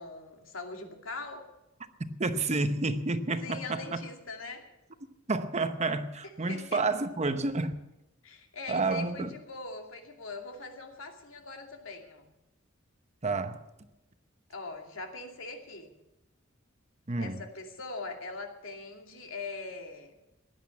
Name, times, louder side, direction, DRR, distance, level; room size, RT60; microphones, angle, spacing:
voice 1, 0.0-1.4 3.4-4.7 6.2-6.8 8.2-12.3 14.5-15.9 17.2-20.1, left 3 dB, 85° left, 2.5 m, -42 dB
voice 2, 2.2-4.0 5.3-7.7 8.7-9.3 13.2-13.6 17.1-17.4, right 3 dB, 35° right, 1.0 m, -30 dB
16.5 x 11.0 x 7.2 m
head